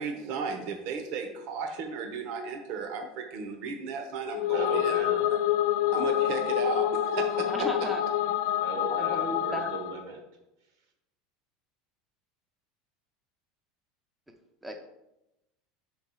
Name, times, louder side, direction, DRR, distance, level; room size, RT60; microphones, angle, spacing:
voice 1, 0.0-4.9 5.9-7.7, right 5 dB, 50° right, 4 dB, 0.9 m, -34 dB
sound 1, 4.2-10.0, left 12 dB, 75° left, 0.3 m, -27 dB
voice 2, 4.5-5.3 8.6-10.2, right 4 dB, 75° right, 3 dB, 1.6 m, -38 dB
voice 3, 7.5-8.0 8.9-9.7 14.6-14.8, equal, 5° right, 4 dB, 0.4 m, -35 dB
5.4 x 4.5 x 5.5 m, 0.93 s
supercardioid pair, 170°, 2 cm